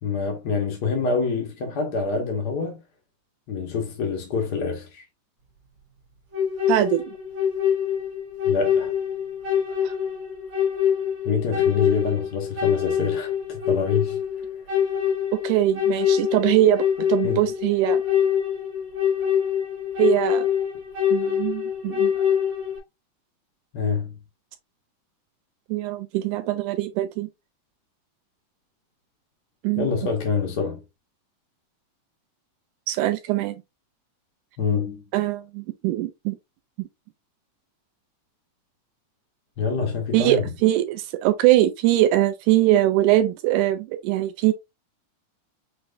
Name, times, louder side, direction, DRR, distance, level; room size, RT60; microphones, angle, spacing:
voice 1, 0.0-2.8 3.5-5.0 8.5-8.9 11.2-14.2 17.2-17.5 23.7-24.2 29.8-30.8 34.6-35.0 39.6-40.5, left 5 dB, 60° left, 1.0 m, -26 dB
sound 1, 6.3-22.8, left 8 dB, 45° right, 2.4 m, -24 dB
voice 2, 6.7-7.2 9.8-9.9 15.3-18.0 20.0-20.5 21.1-22.1 25.7-27.3 29.6-30.1 32.9-33.6 35.1-36.4 36.8-36.9 40.1-44.5, right 14 dB, 85° right, 2.0 m, -22 dB
6.0 x 3.2 x 2.5 m
omnidirectional pair, 3.5 m